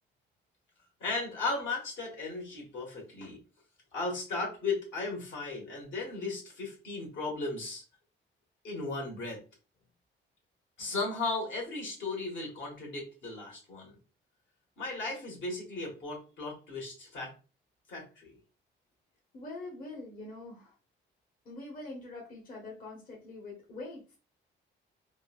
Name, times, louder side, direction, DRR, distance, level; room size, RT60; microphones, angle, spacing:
voice 1, 1.0-3.4 3.9-7.8 8.6-9.4 10.8-14.0 14.8-17.3 17.9-18.4, left 3 dB, 70° left, -2 dB, 1.6 m, -36 dB
voice 2, 19.3-20.7 21.4-24.2, left 2 dB, 45° left, -3 dB, 1.1 m, -44 dB
3.6 x 2.2 x 2.4 m, 0.33 s
cardioid pair, 90°, 20 cm